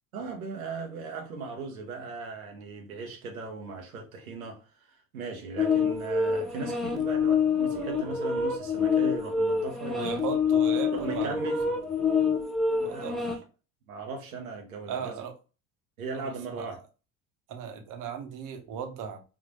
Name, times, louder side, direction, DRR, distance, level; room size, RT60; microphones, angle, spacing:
voice 1, 0.1-4.6 5.1-10.4 10.9-11.7 12.8-13.4 13.9-15.2 16.0-16.8, right 4 dB, 90° right, 0.8 m, -38 dB
sound 1, 5.6-13.4, left 5 dB, ahead, 0.5 m, -26 dB
voice 2, 9.9-11.6 12.8-13.4 14.9-15.3 16.1-16.7 17.5-19.2, right 7 dB, 50° right, 0.8 m, -37 dB
3.6 x 2.4 x 2.5 m
hypercardioid pair, 65°, 41 cm